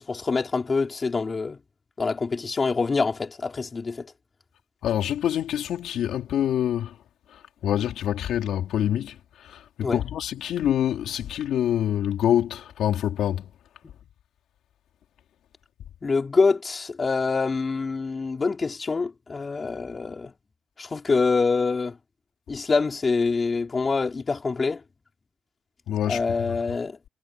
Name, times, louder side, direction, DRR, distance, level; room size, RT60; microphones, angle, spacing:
voice 1, 0.0-1.6 2.0-4.1 9.8-10.0 16.0-20.3 20.8-22.0 22.5-24.8 26.1-27.0, left 4 dB, 30° left, 4.0 m, -25 dB
voice 2, 4.8-7.0 7.3-13.5 25.9-26.2 26.5-26.6, left 10 dB, 75° left, 4.0 m, -26 dB
cardioid pair, 90°, 0 cm